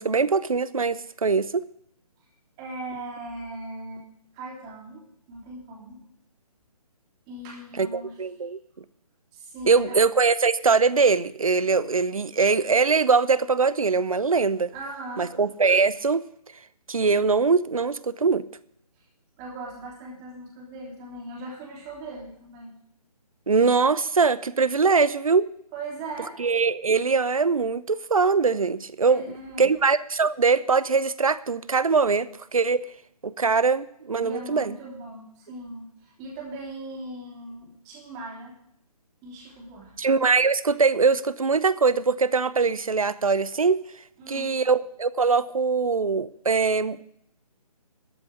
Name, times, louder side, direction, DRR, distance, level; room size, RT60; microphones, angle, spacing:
voice 1, 0.0-1.7 7.8-8.6 9.7-14.7 15.2-16.2 16.9-18.4 23.5-25.5 26.4-29.2 29.6-32.8 33.2-34.8 40.0-43.8 44.3-47.0, right 4 dB, 60° right, 16 dB, 0.8 m, -22 dB
voice 2, 2.6-4.0 4.3-6.0 7.3-8.2 9.3-10.0 14.7-15.4 19.0-19.1 19.4-22.7 25.7-26.4 29.1-29.8 34.2-38.6 39.2-40.0 44.2-44.5, right 2 dB, 20° right, -3 dB, 3.4 m, -39 dB
13.5 x 6.1 x 8.6 m, 0.68 s
figure-of-eight pair, 140°, 20 cm